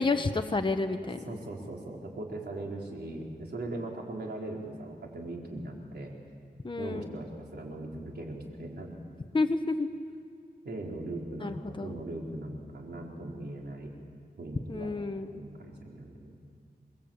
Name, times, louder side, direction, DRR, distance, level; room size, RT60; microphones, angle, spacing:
voice 1, 0.0-1.4 6.6-7.2 9.3-9.9 11.4-11.9 14.7-15.3, left 3 dB, 30° left, 6 dB, 1.1 m, -30 dB
voice 2, 1.3-6.1 6.8-8.9 10.6-13.9 14.4-14.9 15.3-16.3, right 2 dB, 85° right, -1 dB, 4.2 m, -39 dB
29.5 x 20.0 x 8.8 m, 2.3 s
wide cardioid pair, 115°, 17 cm